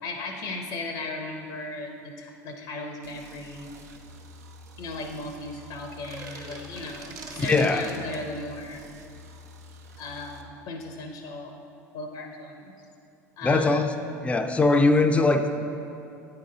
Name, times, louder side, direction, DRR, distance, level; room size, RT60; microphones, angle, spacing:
voice 1, 0.0-3.7 4.8-8.8 10.0-11.7 11.9-12.7 13.4-13.9, left 2 dB, 65° left, 4 dB, 0.6 m, -36 dB
sound 1, 3.0-10.4, equal, 85° right, 0.5 m, -48 dB
sound 2, 5.9-8.3, right 4 dB, 45° right, 0.9 m, -41 dB
voice 2, 7.4-7.8 13.4-13.9 14.2-15.5, left 3 dB, 15° left, 7 dB, 0.4 m, -21 dB
8.9 x 3.9 x 3.8 m, 2.6 s
hypercardioid pair, 70°, 8 cm